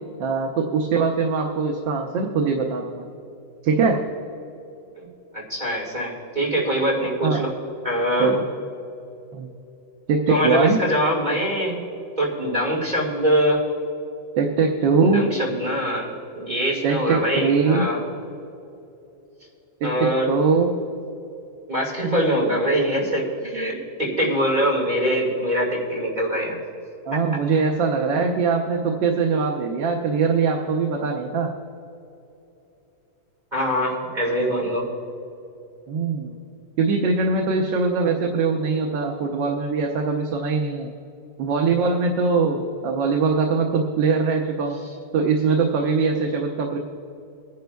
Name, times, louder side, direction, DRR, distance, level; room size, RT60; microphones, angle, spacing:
voice 1, 0.2-3.1 3.6-4.0 7.2-7.4 8.2-8.4 9.3-9.5 10.1-10.8 14.4-15.3 16.8-17.9 19.8-20.7 27.1-31.5 35.9-36.4 36.8-40.9 41.4-44.8 45.1-46.8, right 4 dB, 85° right, 1 dB, 1.5 m, -22 dB
voice 2, 5.3-7.5 7.8-8.3 10.3-11.8 12.2-13.6 15.0-18.0 19.8-20.3 21.7-26.6 27.1-27.2 33.5-34.8, equal, 25° right, -5 dB, 2.0 m, -23 dB
22.5 x 10.5 x 2.3 m, 2.8 s
omnidirectional pair, 2.0 m